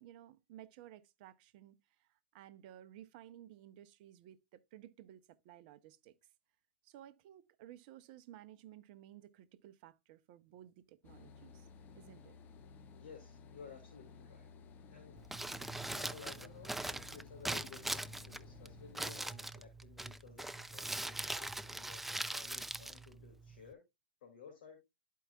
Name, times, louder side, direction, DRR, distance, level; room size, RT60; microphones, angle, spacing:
voice 1, 0.0-6.2 6.8-11.7 11.9-12.4, right 12 dB, 55° right, 0.7 m, -56 dB
sound 1, 11.0-19.0, left 5 dB, 35° left, 0.7 m, -56 dB
voice 2, 13.0-14.5 14.9-15.2 15.9-23.8 24.2-24.8, left 6 dB, 65° left, 2.3 m, -55 dB
Crumpling crinkling, 15.2-23.7, right 1 dB, 5° right, 0.3 m, -42 dB
12.5 x 4.6 x 2.3 m
hypercardioid pair, 115°, 6 cm